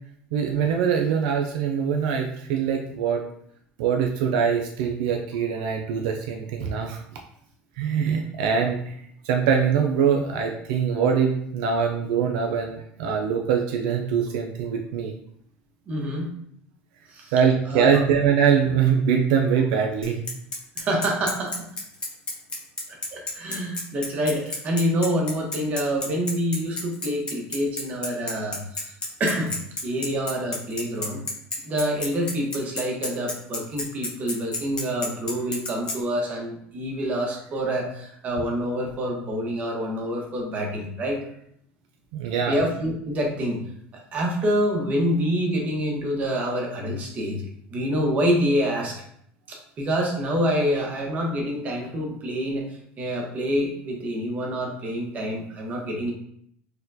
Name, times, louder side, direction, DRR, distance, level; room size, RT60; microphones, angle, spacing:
voice 1, 0.3-3.2 3.8-7.0 7.8-8.9 9.2-15.1 17.3-20.3 42.1-42.5, right 7 dB, 85° right, 3 dB, 0.3 m, -23 dB
voice 2, 15.9-16.3 17.1-17.3 17.6-18.0 20.8-21.6 22.9-28.9 29.2-29.5 29.8-31.2 31.6-41.2 42.5-43.6 44.1-47.4 47.7-49.0 49.5-52.7 53.0-56.1, equal, 35° right, 0 dB, 0.9 m, -26 dB
Bicycle, 20.0-36.0, left 2 dB, 25° left, 0.7 m, -30 dB
4.2 x 2.2 x 2.6 m, 0.69 s
cardioid pair, 130°, 4 cm